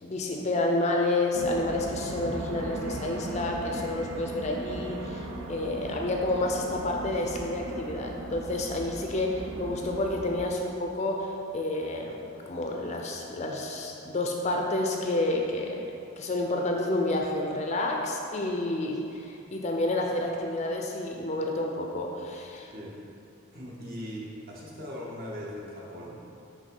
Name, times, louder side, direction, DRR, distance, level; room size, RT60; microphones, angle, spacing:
voice 1, 0.0-12.2 12.5-15.8 16.2-22.7, left 2 dB, 35° left, 1 dB, 0.4 m, -29 dB
sound 1, 1.3-10.4, right 2 dB, 80° right, 0.6 m, -37 dB
voice 2, 23.5-26.1, equal, 45° right, -4 dB, 1.0 m, -39 dB
5.2 x 3.4 x 5.3 m, 2.7 s
head